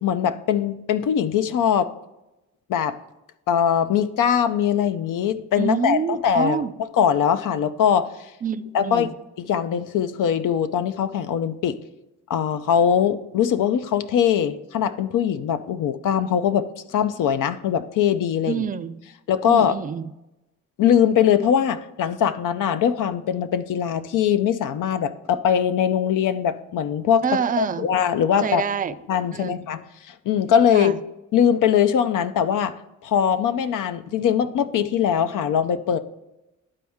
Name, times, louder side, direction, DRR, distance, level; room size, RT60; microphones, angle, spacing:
voice 1, 0.0-1.9 2.7-3.0 3.5-6.0 6.2-6.6 7.0-8.1 8.7-9.1 9.4-11.8 12.3-18.6 19.3-19.8 20.8-27.2 27.6-28.6 29.1-30.9 31.3-36.0, left 8 dB, 75° left, 11 dB, 0.6 m, -21 dB
voice 2, 5.6-6.7 8.4-9.1 18.5-19.0 19.5-20.1 27.2-27.9 28.4-28.9 29.3-29.6 30.7-31.0, right 7 dB, 25° right, 12 dB, 0.4 m, -26 dB
11.5 x 4.3 x 3.5 m, 0.96 s
cardioid pair, 80°, 32 cm